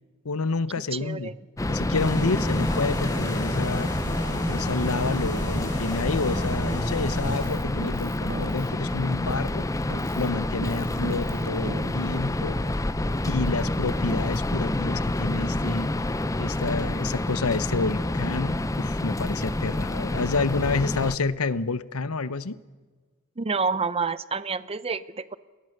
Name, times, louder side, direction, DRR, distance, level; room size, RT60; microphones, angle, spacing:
voice 1, 0.2-1.3 1.7-3.9 4.5-9.6 10.2-12.6 13.3-15.9 16.4-22.6, left 3 dB, 85° left, 15 dB, 0.9 m, -29 dB
voice 2, 0.9-1.4 23.4-25.4, right 4 dB, 30° right, 16 dB, 0.7 m, -28 dB
sound 1, 1.6-21.2, left 1 dB, 15° left, 0.6 m, -28 dB
sound 2, 1.9-7.5, equal, 35° left, 7.1 m, -33 dB
Keyboard (musical), 7.3-9.6 9.9-12.7, right 2 dB, 65° right, 1.7 m, -40 dB
28.5 x 20.5 x 6.7 m, 1.4 s
head